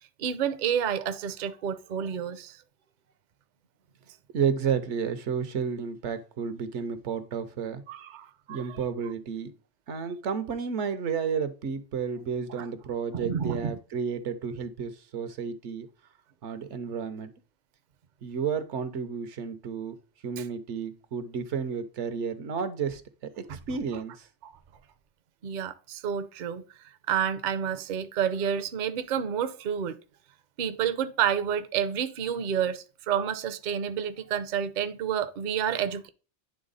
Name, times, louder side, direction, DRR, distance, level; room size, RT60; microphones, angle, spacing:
voice 1, 0.2-2.6 7.9-8.8 12.6-12.7 13.1-13.7 20.4-20.5 23.5-23.6 24.4-24.5 25.4-26.6 27.1-30.0 30.6-36.1, right 8 dB, 55° right, 0.6 m, -29 dB
voice 2, 4.3-7.8 8.5-9.5 9.9-15.9 16.4-17.3 18.2-19.9 20.2-24.3, right 6 dB, 80° right, 1.1 m, -31 dB
9.8 x 3.4 x 4.0 m
omnidirectional pair, 1.2 m